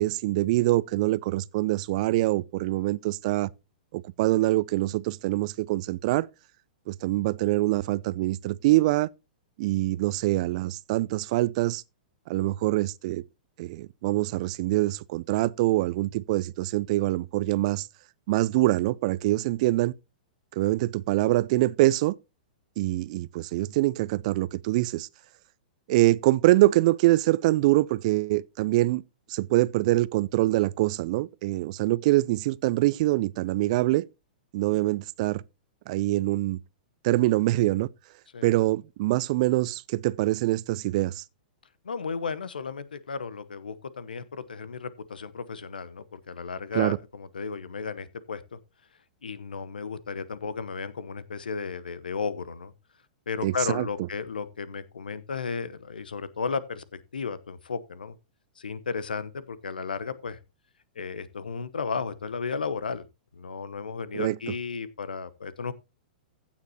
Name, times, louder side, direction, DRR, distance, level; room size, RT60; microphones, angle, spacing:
voice 1, 0.0-3.5 3.9-6.3 6.9-9.1 9.6-11.8 12.3-13.2 13.6-17.9 18.3-19.9 20.6-22.2 22.8-25.1 25.9-29.0 29.3-34.1 34.5-35.4 35.9-36.6 37.0-37.9 38.4-41.2 46.7-47.0 53.4-53.9 64.1-64.4, right 18 dB, 50° right, 0.5 m, -24 dB
voice 2, 41.8-48.6 49.2-52.7 53.3-58.2 58.6-60.4 60.9-63.0 63.3-65.7, left 5 dB, 80° left, 1.0 m, -34 dB
15.5 x 7.3 x 2.8 m
hypercardioid pair, 110°, 5 cm